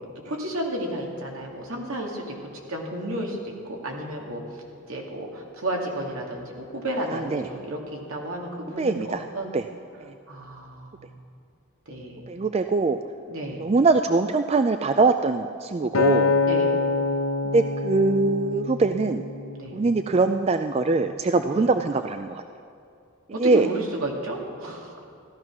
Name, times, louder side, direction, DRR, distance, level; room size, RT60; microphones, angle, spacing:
voice 1, 0.0-9.5 10.3-11.1 11.9-12.3 13.3-13.7 16.4-16.8 19.6-19.8 21.5-21.7 23.3-25.0, right 1 dB, 70° right, 0 dB, 2.4 m, -32 dB
voice 2, 7.1-7.5 8.8-9.2 9.5-9.6 10.0-10.1 12.3-13.0 13.6-16.4 17.5-19.2 19.7-22.4 23.4-23.7, right 3 dB, 30° right, 8 dB, 0.3 m, -22 dB
Acoustic guitar, 15.9-20.3 20.9-21.1, left 4 dB, 80° left, 1.1 m, -26 dB
15.0 x 12.5 x 6.1 m, 2.5 s
head